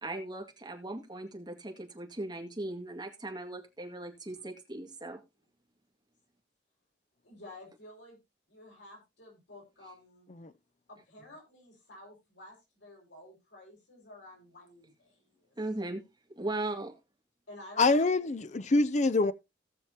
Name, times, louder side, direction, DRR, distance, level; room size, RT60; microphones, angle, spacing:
voice 1, 0.0-5.2 15.6-16.0 16.4-16.9, right 2 dB, 25° right, 2.1 m, -38 dB
voice 2, 7.2-8.2 8.5-10.3 10.9-15.6 17.5-17.9, left 1 dB, 85° left, 5.8 m, -52 dB
voice 3, 17.8-19.3, left 3 dB, 40° left, 0.6 m, -25 dB
18.0 x 6.3 x 2.9 m
head